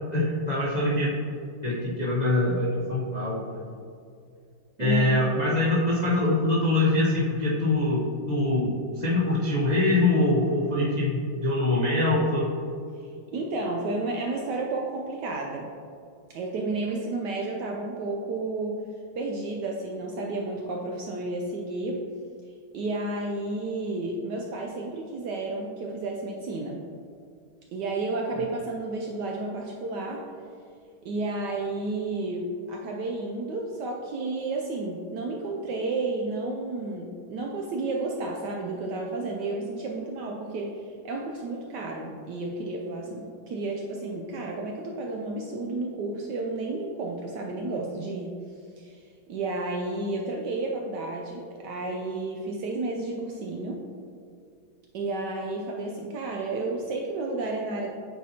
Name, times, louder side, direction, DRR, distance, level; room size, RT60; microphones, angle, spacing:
voice 1, 0.1-1.1 1.6-3.6 4.8-12.5, left 2 dB, 50° left, -8 dB, 0.5 m, -24 dB
voice 2, 4.8-5.6 12.9-15.7 16.3-22.0 22.4-26.8 27.7-30.3 31.0-53.8 54.9-57.9, right 2 dB, 75° right, 0 dB, 1.0 m, -32 dB
8.3 x 4.1 x 2.8 m, 2.4 s
omnidirectional pair, 2.3 m